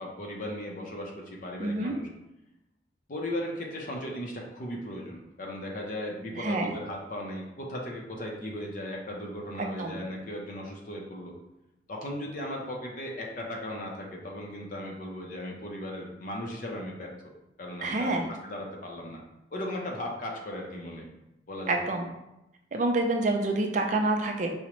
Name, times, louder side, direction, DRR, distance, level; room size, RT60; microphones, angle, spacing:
voice 1, 0.0-2.1 3.1-11.3 11.9-17.3 17.6-19.2 19.5-21.1 21.5-21.7, left 1 dB, 50° left, 0 dB, 0.5 m, -37 dB
voice 2, 1.6-1.9 6.4-6.7 9.6-10.0 17.8-18.3 21.7-22.1 22.7-24.5, right 2 dB, 45° right, 3 dB, 0.4 m, -27 dB
4.8 x 2.1 x 2.9 m, 0.92 s
head